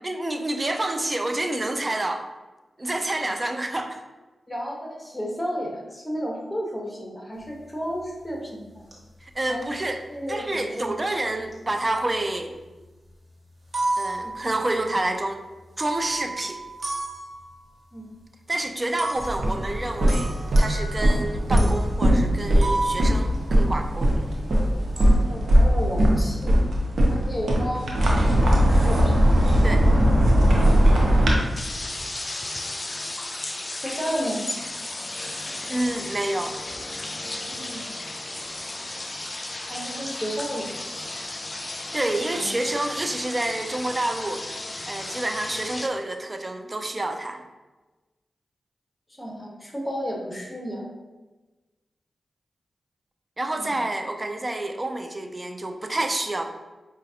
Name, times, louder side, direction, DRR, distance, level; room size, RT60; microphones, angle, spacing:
voice 1, 0.0-2.3 2.8-4.0 9.2-10.0 10.3-12.5 14.0-15.4 15.8-16.6 18.5-24.1 29.6-29.8 35.7-36.6 41.9-44.5 44.9-47.4 53.4-56.4, right 2 dB, 35° right, 6 dB, 0.4 m, -28 dB
voice 2, 4.5-8.8 9.5-9.7 10.1-10.9 14.2-14.4 17.9-18.1 25.1-26.6 27.1-27.9 28.4-29.1 33.4-33.6 33.8-34.4 37.5-37.9 39.7-41.1 41.9-42.5 49.2-50.9 53.6-53.7, equal, 15° left, -1 dB, 1.1 m, -32 dB
sound 1, 7.4-7.5 7.9-8.3 8.9-9.4 9.7-10.3 11.2-11.7 12.0-12.8 13.2-13.3 13.5-15.0 15.8-17.7 19.0-24.2 24.5-25.2, right 2 dB, 55° right, 1.0 m, -33 dB
sound 2, 19.2-31.3, equal, 75° right, 0.7 m, -20 dB
sound 3, 31.4-45.9, left 2 dB, 35° left, 0.4 m, -34 dB
5.0 x 2.4 x 2.8 m, 1.2 s
cardioid pair, 40°, 0 cm